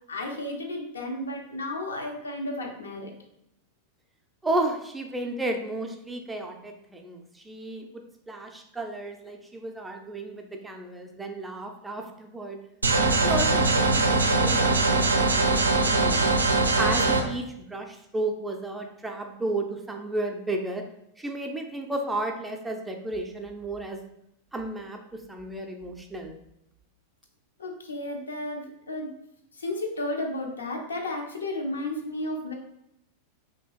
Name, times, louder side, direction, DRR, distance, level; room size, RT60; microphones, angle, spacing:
voice 1, 0.1-3.1 27.6-29.1 29.6-32.5, left 1 dB, 70° left, 2 dB, 0.6 m, -33 dB
voice 2, 4.4-8.0 8.3-12.6 13.1-16.3 16.7-20.8 21.2-24.0 24.5-26.4, right 2 dB, 10° right, 3 dB, 0.4 m, -33 dB
sound 1, 12.8-17.2, right 3 dB, 80° right, 0.4 m, -22 dB
2.9 x 2.7 x 2.9 m, 0.80 s
figure-of-eight pair, 90°, 0 cm